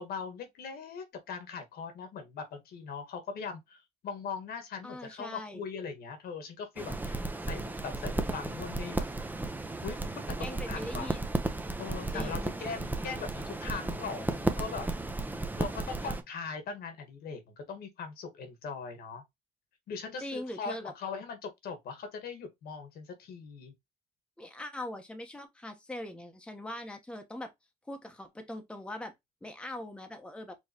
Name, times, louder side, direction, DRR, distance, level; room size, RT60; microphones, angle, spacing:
voice 1, 0.0-7.2 7.5-9.1 9.8-10.0 10.4-11.1 11.8-14.9 15.6-19.2 19.9-23.7, left 5 dB, 75° left, 1.6 m, -40 dB
voice 2, 4.8-5.6 10.4-11.2 12.1-12.6 20.2-20.9 24.4-27.5 27.9-29.1 29.4-30.6, left 1 dB, 5° left, 1.0 m, -41 dB
sound 1, 6.8-16.2, right 2 dB, 10° right, 0.8 m, -34 dB
4.7 x 3.0 x 2.9 m
cardioid pair, 85°, 16 cm